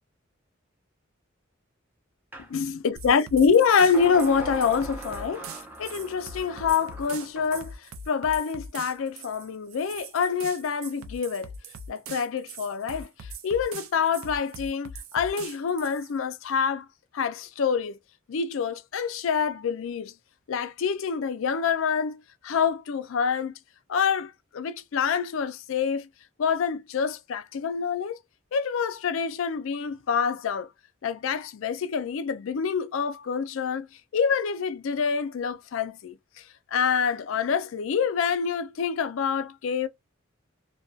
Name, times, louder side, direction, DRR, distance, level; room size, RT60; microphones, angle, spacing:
sound 1, 2.3-2.5 3.9-7.7, right 2 dB, 10° right, 0.5 m, -40 dB
voice 1, 2.5-5.5 5.8-7.8 8.1-11.5 11.9-13.1 13.4-16.9 17.1-18.0 18.3-20.1 20.5-23.5 23.9-26.1 26.4-28.2 28.5-30.7 31.0-33.9 34.1-36.4 36.7-39.9, left 6 dB, 70° left, 0.4 m, -26 dB
sound 2, 3.0-16.1, right 3 dB, 90° right, 0.5 m, -42 dB
2.5 x 2.2 x 2.3 m
head